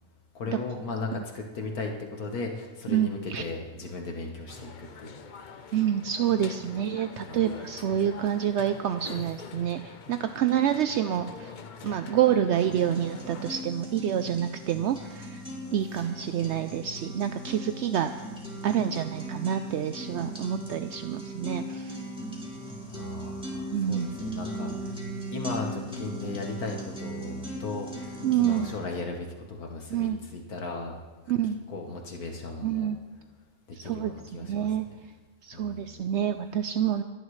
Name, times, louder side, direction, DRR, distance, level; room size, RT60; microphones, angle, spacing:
voice 1, 0.4-5.2 7.3-7.7 22.9-25.0 25.3-31.0 31.7-32.9 33.8-35.0 35.5-36.1, left 3 dB, 70° left, 2 dB, 1.7 m, -37 dB
voice 2, 2.9-3.4 5.7-11.5 11.8-15.4 15.7-18.1 18.6-22.0 23.7-24.1 28.2-28.7 29.9-30.2 31.3-31.6 32.6-33.0 33.7-34.1 34.5-34.9 35.4-37.0, right 10 dB, 70° right, 9 dB, 0.6 m, -27 dB
sound 1, 4.5-13.6, left 5 dB, 50° left, 0.5 m, -44 dB
sound 2, 12.7-28.7, right 1 dB, 5° right, 2.6 m, -38 dB
28.5 x 10.5 x 3.2 m, 1.3 s
omnidirectional pair, 1.6 m